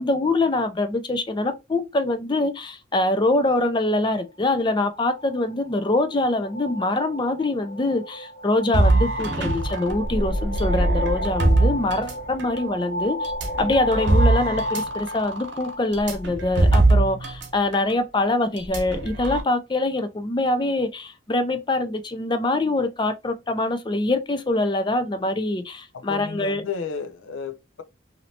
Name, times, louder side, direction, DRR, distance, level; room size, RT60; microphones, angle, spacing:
voice 1, 0.0-13.3 13.6-26.6, left 2 dB, 25° left, 0.4 m, -24 dB
sound 1, 4.9-16.3, equal, 50° left, 1.1 m, -33 dB
sound 2, 8.7-12.6 13.2-17.5 17.7-17.9 18.6-19.4, right 2 dB, 65° right, 0.9 m, -22 dB
voice 2, 25.9-27.8, left 6 dB, 75° left, 0.5 m, -33 dB
3.1 x 2.7 x 2.7 m
head